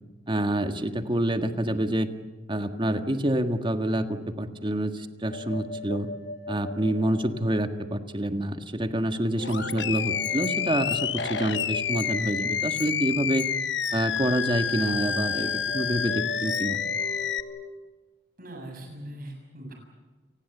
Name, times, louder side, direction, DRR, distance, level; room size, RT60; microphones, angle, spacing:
voice 1, 0.3-2.1 2.5-6.1 6.5-13.5 13.9-16.8, right 1 dB, 30° right, 7 dB, 1.7 m, -27 dB
sound 1, 5.3-8.0 9.4-13.3 14.6-17.7, left 1 dB, 65° left, 3.1 m, -39 dB
voice 2, 9.3-10.2 18.4-19.7, right 1 dB, 55° right, 2 dB, 7.0 m, -41 dB
Animal, 9.4-17.4, left 7 dB, 80° left, 1.1 m, -29 dB
29.5 x 19.5 x 8.0 m, 1.3 s
head